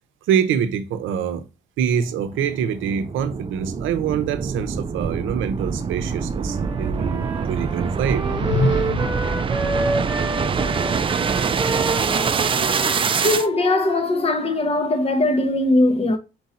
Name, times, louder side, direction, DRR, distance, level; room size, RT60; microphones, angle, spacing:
voice 1, 0.3-1.4 1.8-8.2, right 8 dB, 80° right, 0.7 m, -25 dB
sound 1, 1.9-13.5, right 5 dB, 25° right, 0.4 m, -25 dB
Wind instrument woodwind instrument, 6.4-14.6, right 2 dB, 10° right, 0.9 m, -30 dB
sound 2, 8.0-9.4, left 3 dB, 65° left, 0.7 m, -25 dB
voice 2, 13.2-16.2, left 2 dB, 30° left, 0.9 m, -20 dB
4.6 x 2.7 x 4.1 m
cardioid pair, 100°, 20 cm